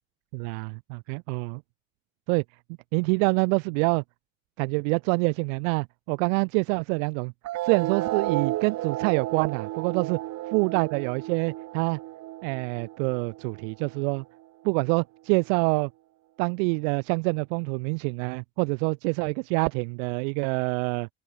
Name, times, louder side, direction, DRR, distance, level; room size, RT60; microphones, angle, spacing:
voice 1, 0.3-1.6 2.3-2.4 2.9-4.0 4.6-7.3 7.6-10.2 10.5-12.0 12.4-14.2 14.6-15.9 16.4-21.1, right 36 dB, 70° right, 0.9 m, -26 dB
sound 1, 7.4-14.4, right 16 dB, 40° right, 0.6 m, -33 dB
open air
hypercardioid pair, 70°, 41 cm